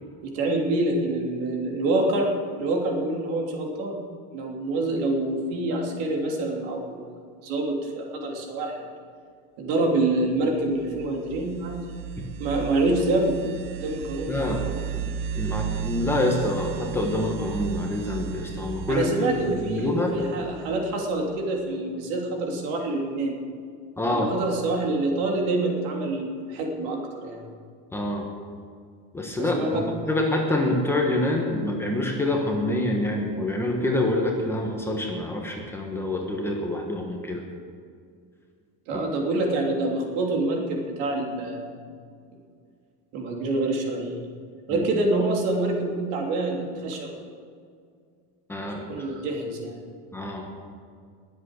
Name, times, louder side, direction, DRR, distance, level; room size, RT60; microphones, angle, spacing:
voice 1, 0.2-4.0 4.3-8.9 9.6-11.8 12.4-13.4 13.7-14.5 18.9-23.4 24.1-27.4 29.4-29.8 38.9-41.7 43.1-44.2 44.7-47.1 48.9-49.8, right 2 dB, 70° right, 1 dB, 3.2 m, -26 dB
sound 1, 10.6-21.1, right 8 dB, 35° right, 0.6 m, -34 dB
voice 2, 14.3-14.6 14.9-15.1 15.3-19.0 19.5-20.1 24.0-24.3 27.9-28.3 29.1-37.4 38.9-39.0 44.7-44.8 48.5-48.9 50.1-50.5, left 1 dB, 5° left, 0 dB, 1.3 m, -26 dB
21.0 x 8.1 x 6.6 m, 2.1 s
cardioid pair, 170°, 35 cm